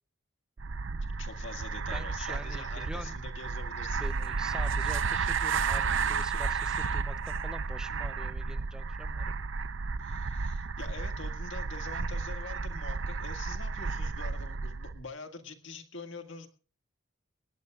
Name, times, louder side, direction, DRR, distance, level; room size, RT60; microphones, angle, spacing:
sound 1, 0.6-15.0, right 5 dB, 60° right, 0.6 m, -32 dB
voice 1, 1.1-4.1 10.0-16.5, left 3 dB, 60° left, 7 dB, 1.9 m, -45 dB
voice 2, 1.9-3.2 4.0-9.3, equal, 5° right, 10 dB, 0.6 m, -45 dB
20.0 x 18.0 x 2.4 m, 0.39 s
head